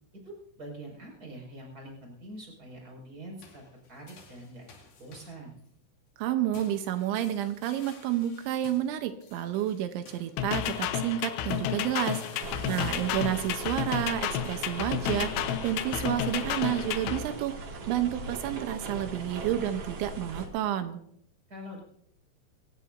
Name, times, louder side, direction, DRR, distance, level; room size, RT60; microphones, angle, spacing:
voice 1, 0.2-4.7 5.0-5.6 12.5-13.0 21.5-21.8, right 1 dB, 20° right, -1 dB, 6.0 m, -45 dB
sound 1, 3.4-5.7 6.5-11.2 11.5-14.7, left 4 dB, 55° left, 4.1 m, -54 dB
voice 2, 6.2-17.5 17.9-21.0, right 11 dB, 85° right, 7 dB, 3.2 m, -30 dB
sound 2, 10.4-17.2, left 10 dB, 80° left, 3.4 m, -31 dB
sound 3, 12.4-20.5, right 3 dB, 50° right, 2.9 m, -40 dB
23.5 x 18.0 x 2.7 m, 0.71 s
omnidirectional pair, 5.4 m